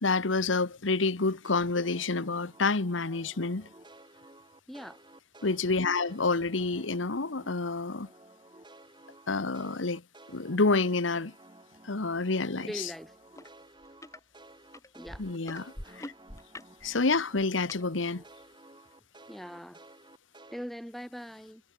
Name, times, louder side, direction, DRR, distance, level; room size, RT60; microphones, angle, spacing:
voice 1, 0.0-3.7 5.4-8.1 9.3-10.0 10.3-11.3 11.8-12.9 15.2-16.1 16.8-18.2, left 3 dB, 90° left, 1.3 m, -28 dB
sound 1, 1.4-7.7 8.0-17.3 17.6-20.6, right 2 dB, 25° right, 7.2 m, -54 dB
voice 2, 4.7-5.0 12.6-13.1 14.9-15.2 19.3-19.8 20.5-21.6, equal, ahead, 5.4 m, -41 dB
sound 2, 13.4-13.5 13.8-14.2 14.7-17.8 18.5-18.6, left 1 dB, 15° left, 2.4 m, -44 dB
head